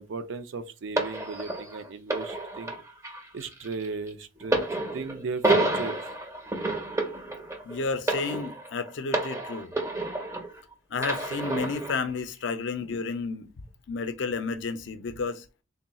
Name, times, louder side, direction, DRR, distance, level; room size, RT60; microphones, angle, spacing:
voice 1, 0.0-2.7 3.3-4.6 4.9-6.0, right 4 dB, 65° right, 0.4 m, -36 dB
sound 1, 1.0-10.6 11.0-12.0 12.8-13.0, right 2 dB, 15° right, 0.5 m, -30 dB
voice 2, 7.6-9.7 10.9-13.5 13.9-15.4, left 4 dB, 60° left, 0.4 m, -31 dB
3.4 x 2.3 x 4.0 m
head